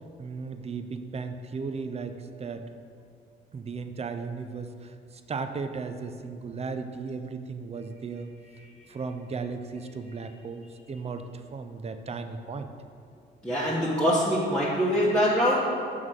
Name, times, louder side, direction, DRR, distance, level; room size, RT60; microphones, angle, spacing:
voice 1, 0.2-2.7 3.5-8.3 8.9-11.2 11.5-12.7, right 4 dB, 30° right, 8 dB, 0.5 m, -36 dB
voice 2, 13.4-15.6, equal, 5° left, -9 dB, 1.2 m, -24 dB
6.2 x 3.7 x 6.2 m, 2.4 s
cardioid pair, 90°, 20 cm